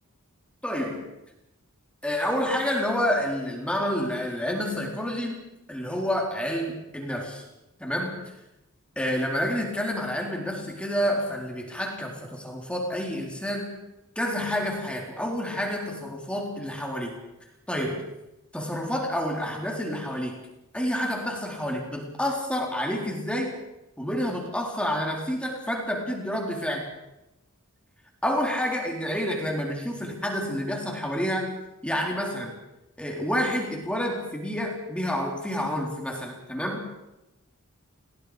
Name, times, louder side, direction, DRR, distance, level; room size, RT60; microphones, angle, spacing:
voice 1, 0.6-1.1 2.0-7.4 7.8-8.4 9.0-13.8 14.2-17.1 17.7-18.0 18.5-20.4 20.7-23.5 24.0-26.9 28.2-32.5 33.0-36.9, equal, 5° left, 0 dB, 3.9 m, -29 dB
29.5 x 19.0 x 5.1 m, 0.92 s
head